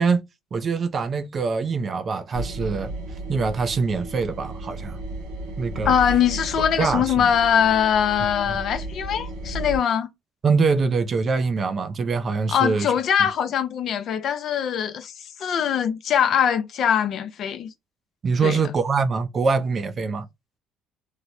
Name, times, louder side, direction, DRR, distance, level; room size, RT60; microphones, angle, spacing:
voice 1, 0.0-2.9 3.3-5.0 5.6-5.9 6.8-7.3 8.5-8.6 10.4-12.9 18.2-20.3, right 4 dB, 40° right, 0.4 m, -24 dB
sound 1, 2.3-9.8, right 1 dB, 85° right, 0.9 m, -34 dB
voice 2, 5.9-10.1 12.5-17.7 18.4-18.6, left 8 dB, 60° left, 0.5 m, -22 dB
3.0 x 2.1 x 2.5 m
supercardioid pair, 85°, 0 cm